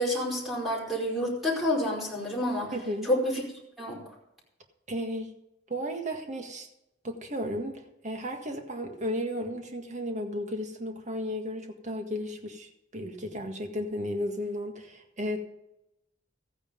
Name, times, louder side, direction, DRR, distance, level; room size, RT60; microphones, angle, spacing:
voice 1, 0.0-2.7 3.0-3.4 3.8-4.0, left 1 dB, ahead, -3 dB, 4.7 m, -28 dB
voice 2, 2.7-3.1 4.9-5.3 5.7-6.7 7.0-15.4, equal, 40° right, 4 dB, 1.8 m, -34 dB
14.0 x 9.5 x 5.3 m, 0.85 s
head